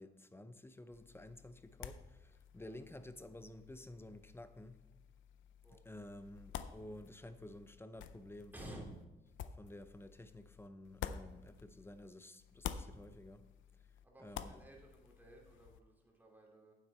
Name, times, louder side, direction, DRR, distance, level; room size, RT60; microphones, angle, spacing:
voice 1, 0.0-4.8 5.7-9.0 9.6-13.5 14.2-14.6, left 1 dB, 10° left, 0.6 m, -52 dB
sound 1, 0.9-12.1 12.4-15.8, left 9 dB, 75° left, 0.6 m, -51 dB
voice 2, 8.5-8.9 14.0-16.7, right 1 dB, 10° right, 2.7 m, -54 dB
9.0 x 7.7 x 4.4 m
cardioid pair, 90°, 20 cm